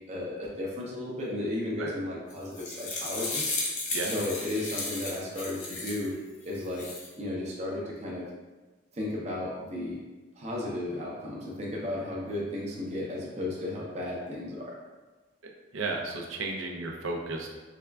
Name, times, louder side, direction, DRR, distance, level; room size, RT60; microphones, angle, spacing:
voice 1, 0.1-3.5 4.0-6.1 6.4-6.9 7.2-8.3 8.9-10.0 10.4-14.7, left 1 dB, 30° right, -4 dB, 0.6 m, -34 dB
sound 1, 2.3-6.1 6.5-7.1, left 2 dB, 35° left, 0.6 m, -34 dB
voice 2, 15.4-17.5, right 3 dB, 75° right, 1 dB, 0.5 m, -34 dB
3.5 x 2.3 x 3.3 m, 1.2 s
head